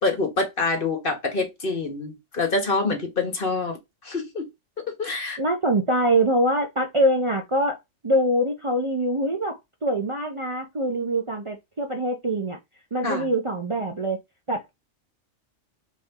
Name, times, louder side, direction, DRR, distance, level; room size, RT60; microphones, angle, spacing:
voice 1, 0.0-3.8 4.0-4.5 5.0-5.4 13.0-13.3, left 3 dB, 50° left, 1.5 m, -26 dB
voice 2, 5.4-7.8 8.0-12.6 12.9-14.2 14.5-14.7, right 1 dB, 35° right, 0.6 m, -24 dB
4.2 x 3.3 x 3.6 m
omnidirectional pair, 1.2 m